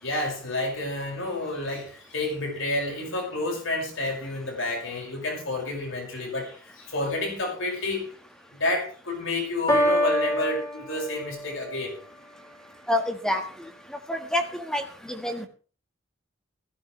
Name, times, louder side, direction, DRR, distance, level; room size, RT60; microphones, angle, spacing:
voice 1, 0.0-8.1 8.5-12.0, left 2 dB, 70° left, 1 dB, 6.0 m, -30 dB
Piano, 9.7-11.7, equal, 20° left, 4.5 m, -25 dB
voice 2, 12.9-13.4 14.1-15.5, left 1 dB, 5° left, 5 dB, 1.6 m, -27 dB
15.5 x 15.5 x 3.3 m, 0.39 s
head